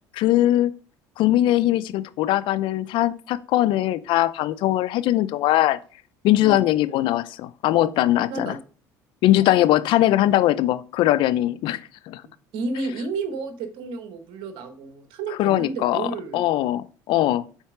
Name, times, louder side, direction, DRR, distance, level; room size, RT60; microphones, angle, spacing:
voice 1, 0.1-0.7 1.2-5.8 6.2-8.6 9.2-11.8 12.1-12.2 15.4-16.1 16.3-17.4, left 14 dB, 65° left, 0.6 m, -21 dB
voice 2, 12.5-16.5, right 3 dB, 65° right, 1.5 m, -31 dB
7.3 x 4.4 x 5.0 m
supercardioid pair, 75°, 9 cm